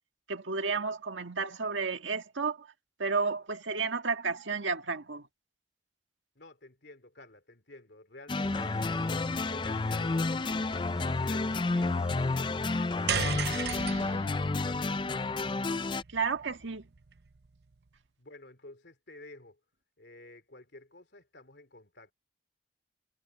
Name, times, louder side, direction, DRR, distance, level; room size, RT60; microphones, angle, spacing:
voice 1, 0.3-2.7 3.0-5.3 16.1-16.9, right 4 dB, 90° right, 1.8 m, -32 dB
voice 2, 6.3-15.7 18.2-19.6 20.0-22.1, left 2 dB, 65° left, 2.9 m, -52 dB
sound 1, 8.3-16.0, left 3 dB, 25° left, 0.4 m, -30 dB
sound 2, 8.4-13.5, equal, 5° right, 2.4 m, -46 dB
sound 3, 13.1-17.5, right 8 dB, 60° right, 0.7 m, -37 dB
head